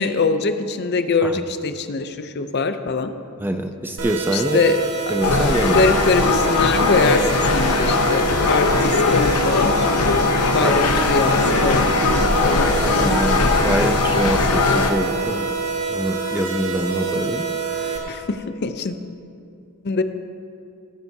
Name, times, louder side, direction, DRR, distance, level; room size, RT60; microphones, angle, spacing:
voice 1, 0.0-3.1 4.3-4.8 5.7-12.8 18.1-18.9 19.8-20.0, left 4 dB, 50° left, 9 dB, 0.5 m, -23 dB
voice 2, 3.4-4.6 5.1-5.8 10.6-10.8 12.8-15.5 15.9-17.5 17.8-18.2, right 1 dB, 10° right, 7 dB, 0.3 m, -25 dB
sound 1, 4.0-18.0, right 5 dB, 85° right, 1.5 m, -26 dB
sound 2, 5.2-14.9, left 4 dB, 90° left, 0.8 m, -19 dB
18.0 x 9.2 x 2.7 m, 2.6 s
head